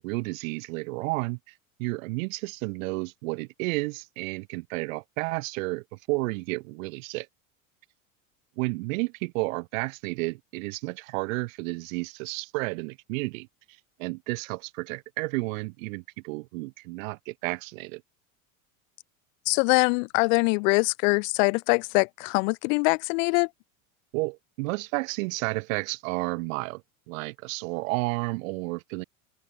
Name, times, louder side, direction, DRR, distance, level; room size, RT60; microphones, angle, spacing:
voice 1, 0.0-1.4 1.8-7.3 8.6-13.5 14.0-18.0 24.1-26.8 27.1-29.0, right 25 dB, 70° right, 5.6 m, -31 dB
voice 2, 19.5-23.5, left 32 dB, 65° left, 3.2 m, -23 dB
open air
supercardioid pair, 115°, 41 cm